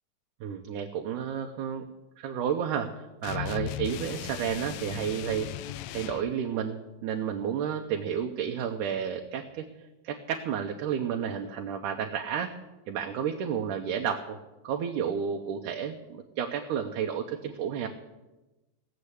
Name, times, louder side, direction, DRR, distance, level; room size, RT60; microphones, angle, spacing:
voice 1, 0.4-1.8 2.2-9.7 10.0-12.5 12.9-14.4 14.6-17.9, right 8 dB, 75° right, 3 dB, 2.2 m, -31 dB
sound 1, 3.2-6.3, left 14 dB, 80° left, 2.1 m, -37 dB
17.0 x 7.5 x 8.2 m, 1.1 s
omnidirectional pair, 3.9 m